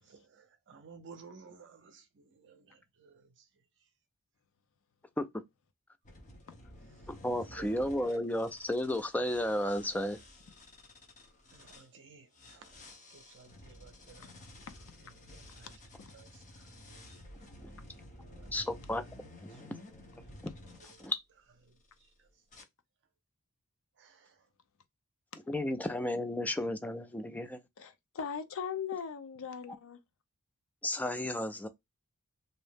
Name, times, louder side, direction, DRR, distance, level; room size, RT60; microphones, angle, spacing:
voice 1, 0.0-3.5 7.4-8.2 11.5-12.8 13.1-14.4 15.2-15.7 16.1-18.5 19.5-19.6 20.2-20.4 20.7-21.1 21.6-21.7 22.2-22.3 24.0-24.5 26.6-26.7, right 5 dB, 55° right, 0.5 m, -57 dB
sound 1, 6.0-11.9 12.3-21.1 21.8-22.1 22.5-22.6, left 1 dB, 35° left, 0.8 m, -53 dB
voice 2, 7.1-10.2 17.6-17.7 18.5-19.0 19.6-19.8 21.0-21.2 25.5-27.6 30.8-31.7, left 1 dB, 5° left, 0.3 m, -33 dB
voice 3, 27.8-30.0, left 7 dB, 65° left, 0.5 m, -39 dB
2.7 x 2.0 x 3.3 m
head